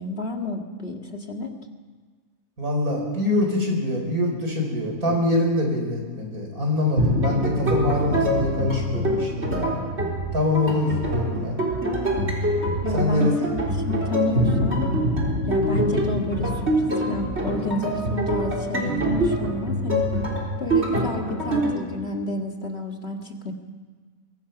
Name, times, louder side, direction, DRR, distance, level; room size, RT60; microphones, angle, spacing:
voice 1, 0.0-1.6 12.8-14.9 15.5-20.1 20.6-23.5, left 1 dB, 45° left, 3 dB, 2.2 m, -30 dB
voice 2, 2.6-9.6 10.3-11.6 12.9-13.3, left 1 dB, 80° right, 1 dB, 5.5 m, -24 dB
sound 1, 7.0-21.7, equal, 45° right, 4.1 m, -24 dB
24.5 x 22.5 x 5.9 m, 1.5 s
omnidirectional pair, 1.5 m